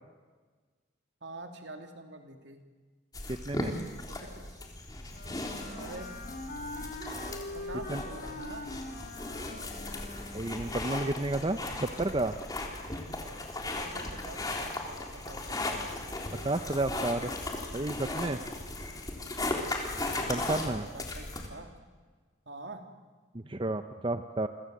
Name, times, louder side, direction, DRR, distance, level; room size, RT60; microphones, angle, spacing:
voice 1, 1.2-2.7 4.1-4.6 5.7-6.2 7.5-8.7 13.6-15.7 20.1-21.7 22.4-22.9, right 2 dB, 70° right, 5 dB, 3.1 m, -46 dB
sound 1, 3.1-21.5, left 2 dB, 20° left, 3.6 m, -37 dB
voice 2, 3.3-3.8 7.9-8.0 10.3-12.4 16.4-17.3 17.7-18.4 20.3-20.8 23.3-24.5, right 2 dB, 30° right, 9 dB, 0.8 m, -31 dB
Wind instrument woodwind instrument, 5.1-10.6, left 2 dB, 50° left, 3.8 m, -43 dB
30.0 x 25.0 x 7.9 m, 1.4 s
head